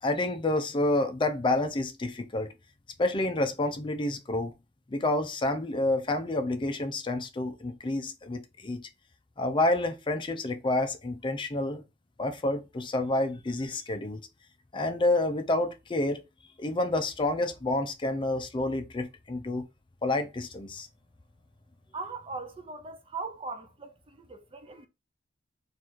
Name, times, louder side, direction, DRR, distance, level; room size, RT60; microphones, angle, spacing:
voice 1, 0.0-2.5 3.0-4.5 4.9-8.9 9.4-11.8 12.2-14.2 14.7-16.2 16.6-19.7 20.0-20.9, left 2 dB, 25° left, 0.5 m, -29 dB
voice 2, 21.9-24.9, right 4 dB, 30° right, 0.6 m, -39 dB
3.9 x 2.5 x 4.5 m
head